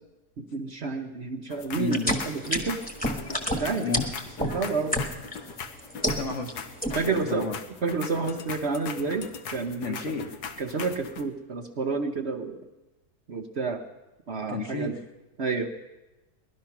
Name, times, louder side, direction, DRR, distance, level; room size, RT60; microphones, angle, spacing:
voice 1, 0.4-2.8 3.5-3.9 4.4-5.0 6.0-6.1 6.9-7.5 7.8-10.0 10.6-12.6 13.3-13.8 14.3-15.0 15.4-15.7, right 4 dB, 50° right, 4 dB, 1.0 m, -30 dB
sound 1, 1.5-11.2, left 6 dB, 85° left, 1.5 m, -40 dB
voice 2, 1.8-2.1 3.8-4.1 6.1-7.6 9.8-10.3 14.5-15.0, left 4 dB, 50° left, 4 dB, 1.4 m, -32 dB
sound 2, 1.8-5.4 5.8-6.5 6.8-7.2, equal, 5° left, 1.3 m, -28 dB
19.0 x 12.0 x 5.9 m, 1.0 s
omnidirectional pair, 1.7 m